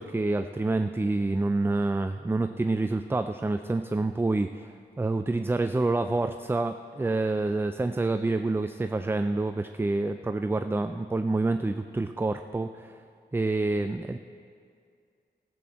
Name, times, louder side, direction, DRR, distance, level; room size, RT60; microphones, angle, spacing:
voice 1, 0.0-13.0 13.3-14.2, right 2 dB, 10° right, 8 dB, 0.3 m, -27 dB
14.5 x 6.2 x 7.3 m, 2.3 s
wide cardioid pair, 85°, 18 cm